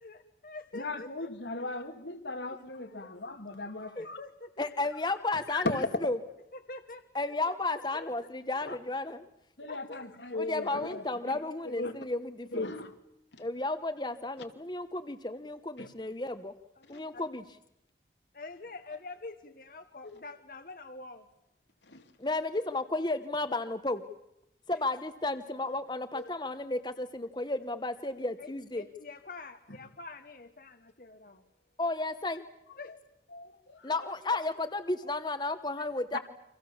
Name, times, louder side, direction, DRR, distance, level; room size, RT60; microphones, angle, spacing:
voice 1, 0.0-1.3 1.6-1.7 3.9-4.7 6.5-7.0 7.9-8.3 9.7-10.2 16.8-17.3 18.3-21.3 24.7-24.8 28.4-28.5 28.8-31.4 32.8-33.0 33.8-33.9 34.3-34.4 35.8-35.9, left 3 dB, 50° left, 7 dB, 1.2 m, -46 dB
voice 2, 0.7-4.2 5.5-5.9 8.6-8.8 9.6-11.3 11.6-11.9 12.5-12.9 13.3-13.4 15.8-15.9 20.0-20.2 21.9-22.0 26.1-26.2 33.3-34.1 36.1-36.2, left 2 dB, 85° left, 6 dB, 2.5 m, -37 dB
voice 3, 4.6-6.2 7.1-9.2 10.3-12.7 13.4-16.5 16.9-17.4 22.2-24.0 24.7-28.8 31.8-32.5 33.8-36.2, left 2 dB, 25° left, 9 dB, 1.0 m, -33 dB
29.5 x 25.0 x 7.2 m, 0.82 s
head